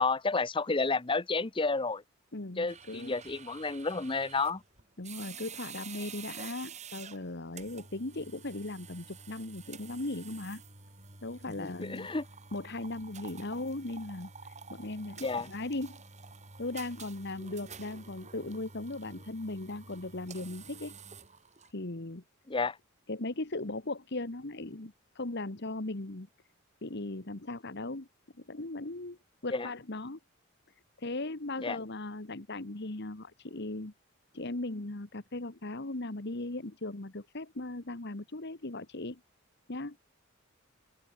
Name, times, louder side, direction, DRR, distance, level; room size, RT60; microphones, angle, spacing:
voice 1, 0.0-2.0 2.6-4.6 11.6-12.2 15.2-15.5 22.5-22.8 29.5-29.7 31.6-31.8, left 3 dB, 25° left, 0.8 m, -31 dB
voice 2, 2.3-3.1 5.0-10.6 11.2-12.1 12.5-16.0 16.6-20.9 21.7-22.2 23.1-26.3 26.8-28.1 28.5-29.2 29.4-30.2 31.0-33.9 34.3-39.2 39.7-40.0, left 2 dB, 50° left, 1.5 m, -38 dB
sound 1, 2.7-21.7, right 5 dB, 35° right, 4.2 m, -49 dB
open air
head